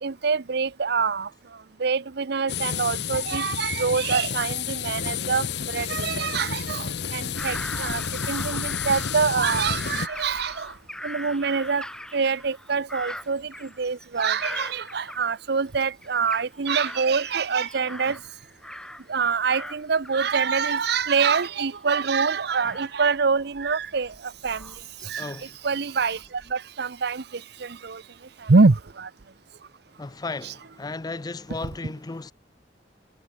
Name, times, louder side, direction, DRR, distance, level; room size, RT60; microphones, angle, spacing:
voice 1, 0.0-1.3 1.8-10.7 11.0-11.9 12.1-18.2 19.1-24.7 25.0-28.0 28.4-29.1 30.4-30.5, right 5 dB, 65° right, 0.7 m, -25 dB
sound 1, 2.5-10.1, left 7 dB, 70° left, 1.0 m, -30 dB
Bird vocalization bird call bird song / Crow, 7.3-15.7 16.0-19.1 19.4-25.4 26.0-26.5, left 1 dB, 5° left, 1.2 m, -40 dB
voice 2, 25.2-25.6 30.0-32.3, left 3 dB, 25° left, 0.5 m, -35 dB
head